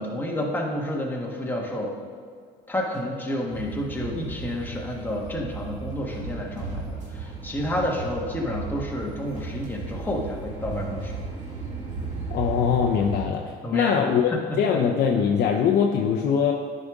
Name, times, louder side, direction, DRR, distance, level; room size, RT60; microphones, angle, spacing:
voice 1, 0.0-1.9 2.7-11.2 13.6-14.0 14.3-14.8, left 1 dB, 10° left, -2 dB, 1.3 m, -30 dB
sound 1, 3.5-13.5, right 4 dB, 45° right, 1.7 m, -35 dB
voice 2, 12.3-14.3 14.6-16.5, left 7 dB, 70° left, 1 dB, 0.6 m, -22 dB
10.0 x 5.1 x 3.6 m, 2.1 s
cardioid pair, 110°, 17 cm